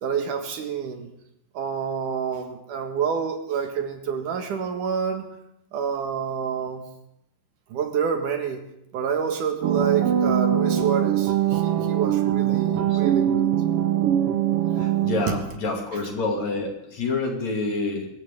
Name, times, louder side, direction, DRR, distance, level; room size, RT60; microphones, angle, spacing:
voice 1, 0.0-1.1 1.5-5.3 5.7-6.8 7.7-8.6 8.9-13.5, right 7 dB, 90° right, 5 dB, 3.2 m, -28 dB
sound 1, 9.6-15.5, right 10 dB, 70° right, 1.4 m, -22 dB
voice 2, 14.7-18.1, left 3 dB, 65° left, 1 dB, 3.7 m, -28 dB
24.5 x 14.0 x 3.7 m, 0.81 s
omnidirectional pair, 3.5 m